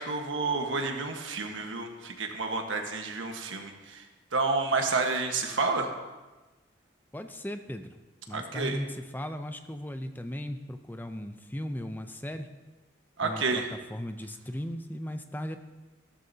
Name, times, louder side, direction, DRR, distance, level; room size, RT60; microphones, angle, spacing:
voice 1, 0.0-4.1 4.3-5.9 8.3-8.8 13.2-13.7, right 3 dB, 90° right, 4 dB, 1.4 m, -30 dB
voice 2, 7.1-8.0 8.3-8.9 9.1-12.5 13.2-13.6 13.9-15.6, equal, 10° left, 8 dB, 0.5 m, -37 dB
14.5 x 13.0 x 2.8 m, 1.2 s
head